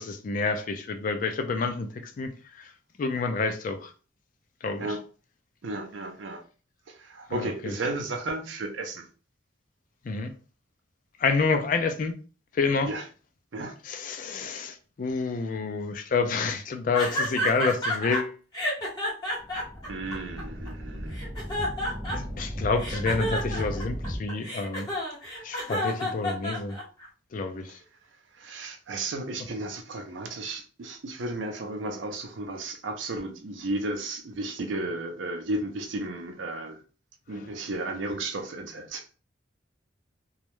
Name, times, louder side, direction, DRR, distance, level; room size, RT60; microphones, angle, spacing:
voice 1, 0.0-1.9 2.2-2.3 2.6-2.7 3.0-3.9 4.6-4.9 7.3-7.7 10.0-10.3 11.2-12.1 12.5-12.9 13.9-18.4 22.1-24.9 25.4-26.8 27.3-27.8 37.3-37.5, left 4 dB, 45° left, 0.3 m, -28 dB
voice 2, 5.6-6.4 6.9-9.1 12.9-13.1 13.5-13.7 19.9-21.2 27.6-27.8 28.4-36.8 37.3-39.1, right 2 dB, 75° right, 0.5 m, -34 dB
sound 1, 16.9-18.2 18.5-20.7 21.1-22.4 22.8-27.1, equal, 20° left, 0.9 m, -30 dB
sound 2, 19.4-24.2, equal, 25° right, 0.7 m, -36 dB
2.3 x 2.0 x 2.9 m
head